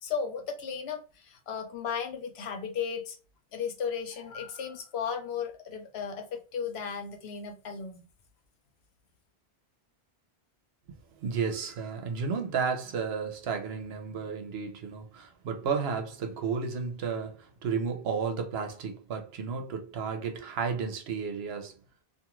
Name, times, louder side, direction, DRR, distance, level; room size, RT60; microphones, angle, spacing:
voice 1, 0.0-3.2 3.5-8.1, left 6 dB, 85° left, 0.9 m, -35 dB
voice 2, 11.2-21.7, right 5 dB, 80° right, 0.9 m, -32 dB
2.4 x 2.4 x 2.9 m
omnidirectional pair, 1.0 m